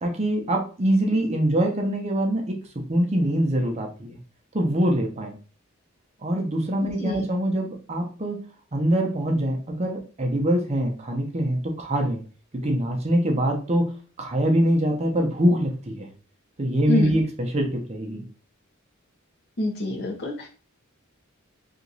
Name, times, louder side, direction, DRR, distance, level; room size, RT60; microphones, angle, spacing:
voice 1, 0.0-2.6 2.9-4.2 4.5-5.3 6.2-8.4 8.7-12.2 12.6-13.9 14.2-16.1 16.6-18.2, right 1 dB, 30° right, 2 dB, 0.6 m, -24 dB
voice 2, 16.9-17.2 19.6-20.5, left 1 dB, 50° left, 2 dB, 0.8 m, -26 dB
2.9 x 2.5 x 3.9 m, 0.38 s
head